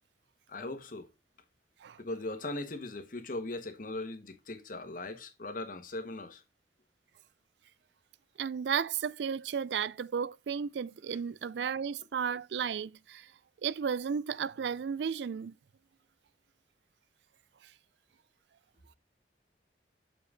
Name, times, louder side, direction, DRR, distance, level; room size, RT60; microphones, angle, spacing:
voice 1, 0.5-1.1 2.0-6.4, left 2 dB, 50° left, 1.3 m, -39 dB
voice 2, 8.4-13.3 13.6-15.6, right 7 dB, 75° right, 0.4 m, -33 dB
6.6 x 5.5 x 3.7 m
head